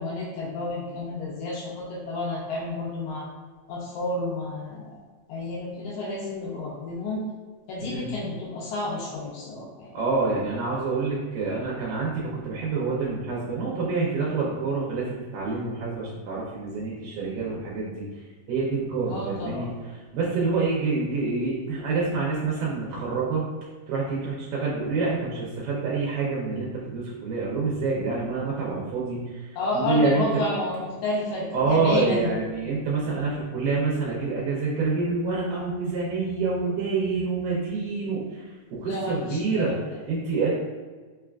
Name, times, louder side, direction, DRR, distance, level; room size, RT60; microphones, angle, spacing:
voice 1, 0.0-3.3 3.7-5.0 5.3-7.3 7.7-9.9 19.1-19.8 29.6-32.3 38.8-40.0, left 2 dB, 80° left, -4 dB, 2.0 m, -31 dB
voice 2, 7.8-8.1 9.9-18.1 18.5-19.7 20.1-23.5 23.9-29.4 29.7-30.4 31.5-39.8 40.1-40.5, right 4 dB, 85° right, -5 dB, 2.2 m, -27 dB
5.1 x 2.3 x 2.3 m, 1.4 s
omnidirectional pair, 3.6 m